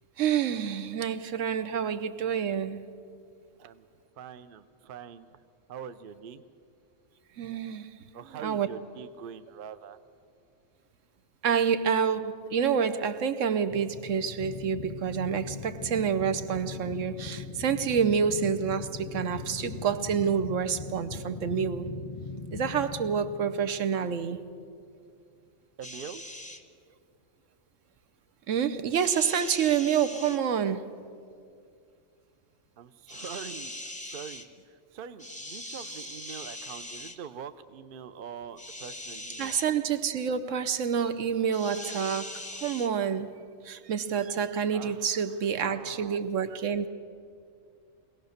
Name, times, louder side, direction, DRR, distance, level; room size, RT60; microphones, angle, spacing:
voice 1, 0.2-2.9 7.4-7.9 8.3-8.7 11.4-21.9 22.5-24.4 28.5-30.9 39.4-43.3 43.6-46.9, right 7 dB, 75° right, 1.1 m, -28 dB
voice 2, 4.2-5.3 5.7-6.4 8.1-10.0 25.8-26.2 32.8-33.8 34.1-34.5 34.9-39.5 44.7-45.1 45.6-46.2, right 8 dB, 50° right, 0.7 m, -43 dB
sound 1, 13.7-24.6, left 5 dB, 35° left, 0.7 m, -40 dB
sound 2, 25.8-26.6 28.9-30.4 33.1-34.5 35.2-37.2 38.6-39.7 41.5-42.9, left 1 dB, 5° left, 0.8 m, -41 dB
22.5 x 17.5 x 6.6 m
omnidirectional pair, 1.3 m